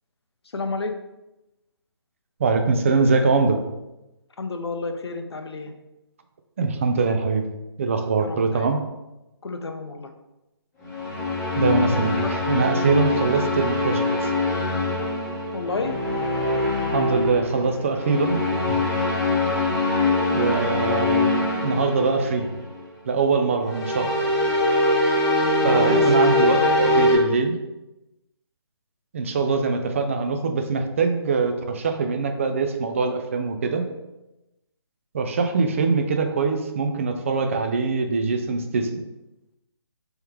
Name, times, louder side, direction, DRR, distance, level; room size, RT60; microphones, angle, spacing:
voice 1, 0.5-0.9 4.4-5.7 8.2-8.8 9.4-10.1 12.2-12.3 15.5-15.9 25.8-26.1, left 3 dB, 70° left, 6 dB, 0.6 m, -30 dB
voice 2, 2.4-3.6 6.6-7.4 7.8-8.8 11.6-14.0 16.9-18.4 18.7-18.8 20.3-21.3 21.6-22.5 23.1-24.1 25.6-27.6 29.1-33.8 35.1-39.0, right 4 dB, 30° right, 5 dB, 0.4 m, -23 dB
sound 1, 10.8-22.8 23.6-27.2, left 2 dB, 15° left, 0.9 m, -23 dB
3.4 x 3.1 x 3.3 m, 0.97 s
figure-of-eight pair, 145°, 14 cm